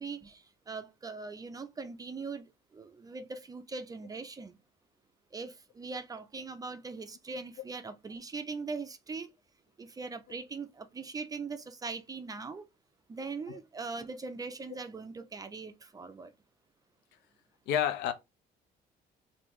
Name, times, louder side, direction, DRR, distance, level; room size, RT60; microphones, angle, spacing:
voice 1, 0.0-2.5 2.7-4.6 5.3-9.3 9.8-12.6 13.1-16.3, right 4 dB, 20° right, 0.4 m, -41 dB
voice 2, 17.7-18.1, left 9 dB, 85° left, 0.5 m, -29 dB
3.5 x 2.6 x 3.0 m
cardioid pair, 110°, 17 cm